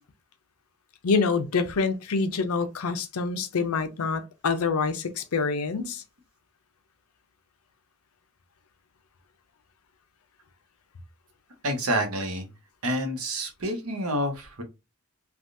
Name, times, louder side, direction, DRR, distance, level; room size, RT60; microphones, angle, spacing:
voice 1, 1.0-6.0, left 4 dB, 90° left, 0.6 m, -26 dB
voice 2, 11.6-12.5 12.8-14.6, right 1 dB, 85° right, 1.0 m, -28 dB
3.4 x 2.3 x 2.6 m
head